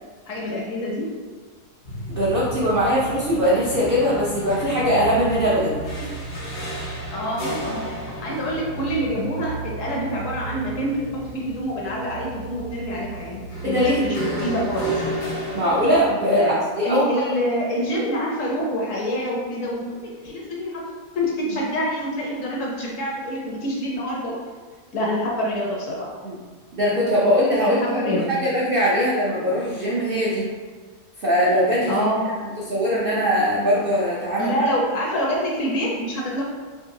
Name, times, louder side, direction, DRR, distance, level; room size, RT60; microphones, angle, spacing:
voice 1, 0.3-1.1 7.1-7.9 8.2-15.0 16.3-16.6 16.8-20.0 20.2-20.8 21.1-24.4 24.9-26.1 27.7-28.3 31.9-32.2 34.4-36.4, equal, 65° left, -3 dB, 0.9 m, -26 dB
sound 1, 1.8-16.0, right 2 dB, 80° left, 1.6 m, -32 dB
voice 2, 2.1-6.1 13.6-14.0 15.5-17.0 21.5-21.6 26.2-26.4 26.7-30.5 31.2-32.0 32.7-34.5, equal, 70° right, -6 dB, 0.5 m, -21 dB
3.9 x 2.6 x 2.6 m, 1.5 s
omnidirectional pair, 1.7 m